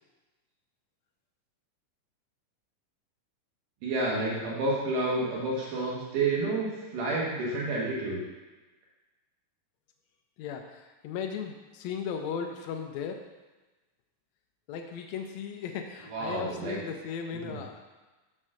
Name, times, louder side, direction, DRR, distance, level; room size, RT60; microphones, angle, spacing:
voice 1, 3.8-8.2 16.1-16.8 17.3-17.6, right 2 dB, 80° right, -5 dB, 3.0 m, -30 dB
voice 2, 10.4-13.2 14.7-17.8, left 7 dB, 80° left, 3 dB, 1.6 m, -36 dB
6.5 x 4.4 x 6.1 m, 1.2 s
omnidirectional pair, 3.7 m